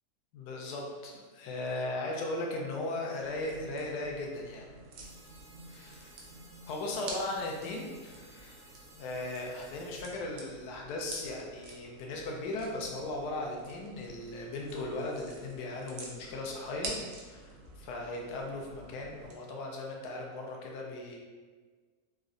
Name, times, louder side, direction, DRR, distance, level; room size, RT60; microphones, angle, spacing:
voice 1, 0.3-4.7 5.7-6.1 6.7-8.6 8.9-16.9 17.2-21.2, left 2 dB, 85° left, 0 dB, 1.1 m, -37 dB
sound 1, 3.2-19.4, right 2 dB, 70° right, 0.8 m, -48 dB
sound 2, 5.0-10.0, right 2 dB, 85° right, 1.3 m, -57 dB
3.5 x 2.0 x 2.4 m, 1.4 s
omnidirectional pair, 1.7 m